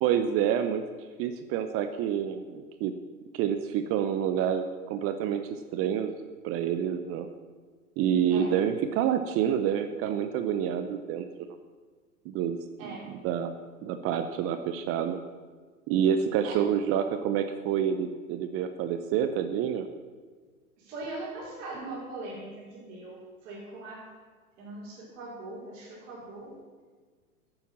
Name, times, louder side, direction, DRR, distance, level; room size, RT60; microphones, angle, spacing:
voice 1, 0.0-0.8 1.2-2.9 3.3-6.1 6.4-7.3 8.0-11.5 12.2-13.5 13.8-15.2 15.9-19.9, right 9 dB, 30° right, 9 dB, 0.7 m, -28 dB
voice 2, 20.8-24.1 24.6-26.5, right 2 dB, 55° right, -5 dB, 4.9 m, -40 dB
11.0 x 8.9 x 7.3 m, 1.5 s
hypercardioid pair, 105°, 44 cm